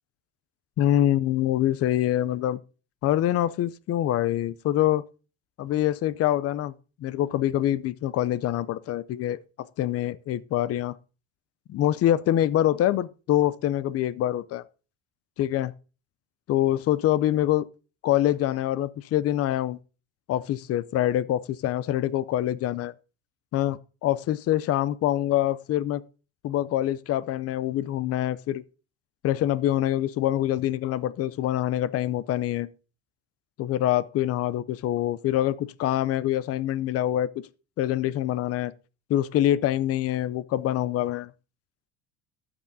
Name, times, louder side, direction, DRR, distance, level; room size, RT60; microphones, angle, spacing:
voice 1, 0.8-2.6 3.0-5.0 5.6-6.7 7.0-9.4 9.8-11.0 11.7-14.6 15.4-15.7 16.5-17.7 18.0-19.8 20.3-22.9 23.5-26.0 26.4-28.6 29.2-32.7 33.6-37.3 37.8-38.7 39.1-41.3, left 12 dB, 45° left, 0.5 m, -25 dB
13.0 x 6.1 x 2.7 m
cardioid pair, 105°, 34 cm